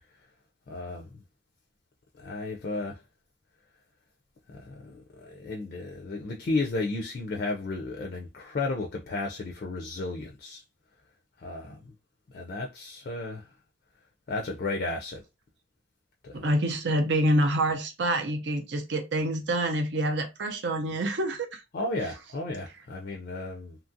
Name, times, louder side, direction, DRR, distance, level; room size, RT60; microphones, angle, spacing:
voice 1, 0.7-1.1 2.2-3.0 4.5-5.0 5.3-10.6 11.4-11.8 12.3-13.5 14.3-15.2 16.2-16.4 21.7-23.8, left 2 dB, 50° left, 0.4 m, -33 dB
voice 2, 16.3-21.6, right 1 dB, 65° right, 0.6 m, -27 dB
2.8 x 2.4 x 2.6 m
head